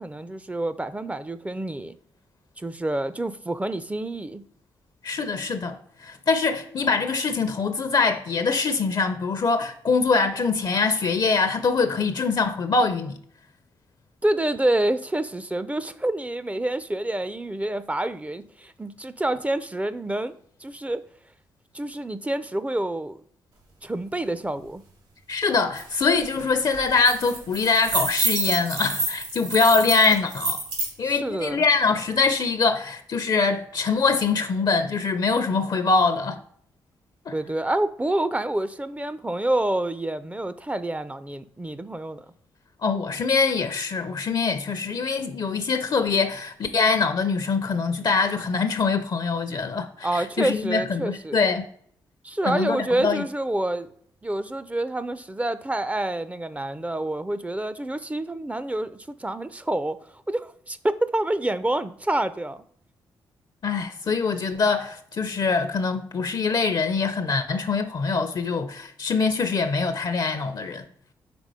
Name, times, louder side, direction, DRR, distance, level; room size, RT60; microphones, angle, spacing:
voice 1, 0.0-2.0 2.6-4.4 14.2-20.4 20.6-21.0 21.7-23.2 23.8-24.8 31.0-31.6 37.3-42.3 50.0-51.4 52.2-53.9 54.2-60.0 60.3-62.6, right 1 dB, 15° right, 0.5 m, -27 dB
voice 2, 5.0-13.2 25.3-30.6 31.0-36.4 37.3-37.4 42.8-51.6 52.5-53.2 63.6-70.8, left 4 dB, 50° left, 0.6 m, -23 dB
sound 1, 25.8-25.9 26.2-26.4 26.7-30.9, right 3 dB, 75° right, 2.2 m, -28 dB
5.2 x 3.8 x 4.9 m
hypercardioid pair, 45°, 9 cm